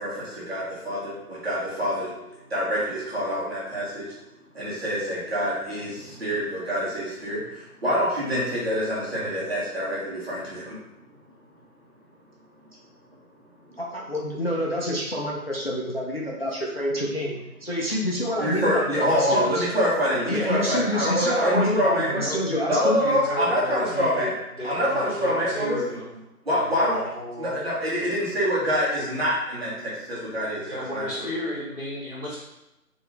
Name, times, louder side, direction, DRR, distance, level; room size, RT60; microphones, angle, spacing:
voice 1, 0.0-2.1 2.5-4.1 4.5-10.8 18.4-22.2 22.7-24.3 24.6-25.8 26.5-27.0 27.4-31.3, equal, 40° right, -7 dB, 1.4 m, -26 dB
voice 2, 13.8-19.7 20.1-23.0, left 1 dB, 45° left, -3 dB, 0.5 m, -27 dB
voice 3, 22.0-26.1 26.5-27.6 30.5-32.3, equal, 5° right, -22 dB, 1.5 m, -33 dB
3.6 x 2.9 x 3.3 m, 0.92 s
figure-of-eight pair, 165°, 45 cm